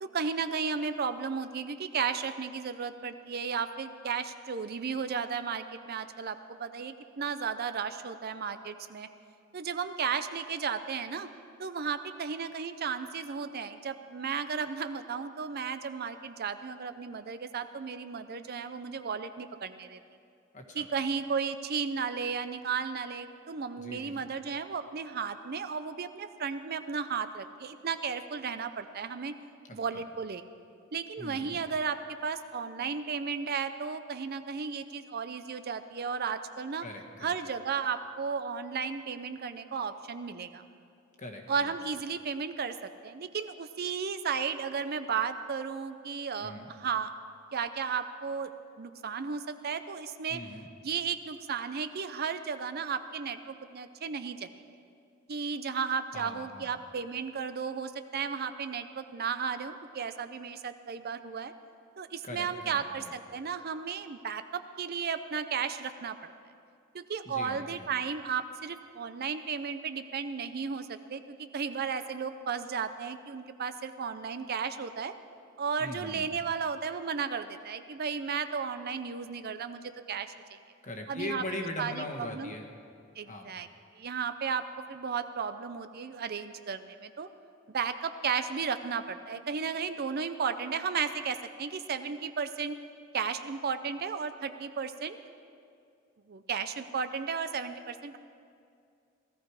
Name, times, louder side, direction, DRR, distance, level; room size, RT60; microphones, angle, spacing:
voice 1, 0.0-9.1 9.5-11.3 11.6-20.0 20.7-29.3 29.7-30.4 30.9-36.8 37.2-40.6 41.5-47.1 47.5-48.5 48.8-50.4 50.8-54.5 55.3-61.5 62.0-66.3 66.9-75.1 75.6-80.3 81.1-81.4 81.8-82.0 82.3-82.5 83.2-83.7 84.0-87.3 87.7-92.8 93.1-95.2 96.3-98.2, right 6 dB, 50° right, 10 dB, 0.5 m, -34 dB
voice 2, 20.5-20.9 23.7-24.3 29.7-30.0 31.2-31.6 36.8-37.3 41.2-41.7 46.4-46.7 50.3-50.7 56.1-56.7 62.2-63.1 67.2-67.9 75.8-76.3 80.8-82.7 83.2-83.5, left 1 dB, 40° left, 3 dB, 1.4 m, -41 dB
17.0 x 14.0 x 4.8 m, 2.4 s
head